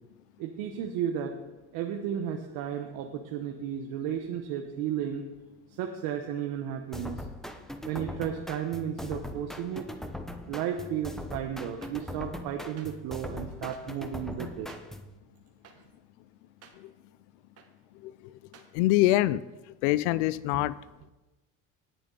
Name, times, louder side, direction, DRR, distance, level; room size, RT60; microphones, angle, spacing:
voice 1, 0.4-1.4 1.7-5.3 5.7-7.2 7.8-9.9 10.3-14.7, right 9 dB, 75° right, 4 dB, 1.1 m, -33 dB
sound 1, 6.9-15.1, left 1 dB, ahead, 0.9 m, -40 dB
sound 2, 11.8-11.9 12.8-12.9 13.7-13.8 14.7-14.8 15.6-15.7 16.6-16.7 17.6-17.7 18.5-18.7, right 7 dB, 45° right, 1.6 m, -52 dB
voice 2, 18.7-19.4 19.8-20.7, left 16 dB, 90° left, 18 dB, 0.5 m, -24 dB
19.0 x 6.9 x 4.0 m, 1.1 s
supercardioid pair, 100°, 34 cm